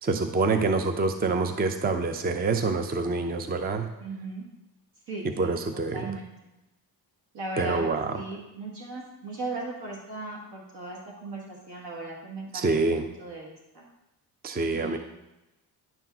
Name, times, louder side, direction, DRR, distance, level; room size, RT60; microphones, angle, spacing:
voice 1, 0.0-3.9 5.4-6.0 7.6-8.1 12.5-13.1 14.4-15.0, right 3 dB, 25° right, 7 dB, 0.5 m, -26 dB
voice 2, 4.0-4.5 5.1-6.3 7.3-13.8 14.7-15.0, right 2 dB, 70° right, -3 dB, 1.8 m, -38 dB
10.0 x 3.6 x 5.9 m, 0.96 s
cardioid pair, 95°, 41 cm